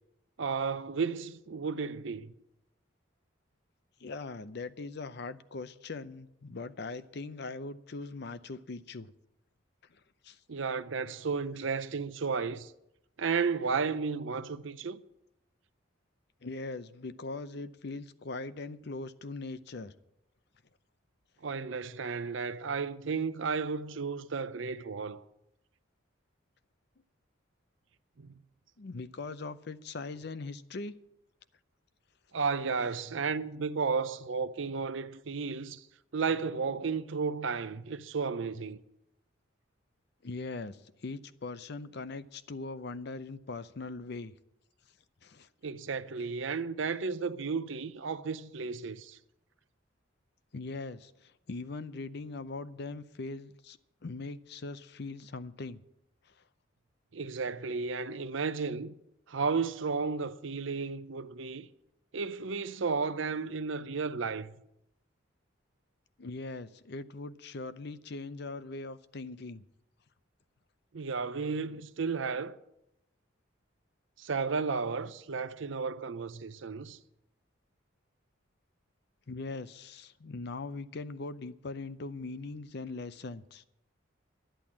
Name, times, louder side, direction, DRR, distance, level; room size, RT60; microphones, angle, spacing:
voice 1, 0.4-2.3 10.5-12.7 13.2-15.0 21.4-25.2 28.2-28.3 32.3-35.8 36.1-38.8 45.6-49.2 57.1-58.9 59.3-61.7 62.1-64.6 70.9-72.6 74.2-77.0, right 5 dB, 70° right, 0.6 m, -33 dB
voice 2, 4.0-9.1 10.2-10.4 16.4-19.9 28.8-31.0 40.2-44.3 45.2-45.5 50.5-53.8 54.0-55.8 66.2-69.6 79.3-83.6, left 3 dB, 55° left, 0.6 m, -41 dB
11.5 x 10.5 x 7.2 m
head